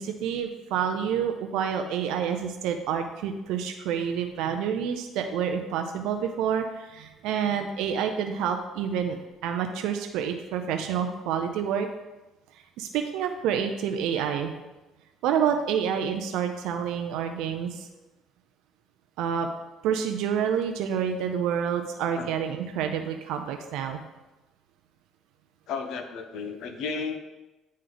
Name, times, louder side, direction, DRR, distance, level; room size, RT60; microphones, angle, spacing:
voice 1, 0.0-9.2 9.4-11.9 12.8-14.5 15.2-17.9 19.2-19.5 19.8-24.0, right 8 dB, 80° right, 5 dB, 0.5 m, -28 dB
voice 2, 25.7-27.2, left 5 dB, 70° left, 7 dB, 0.7 m, -33 dB
9.2 x 3.2 x 3.9 m, 1.1 s
cardioid pair, 105°, 0 cm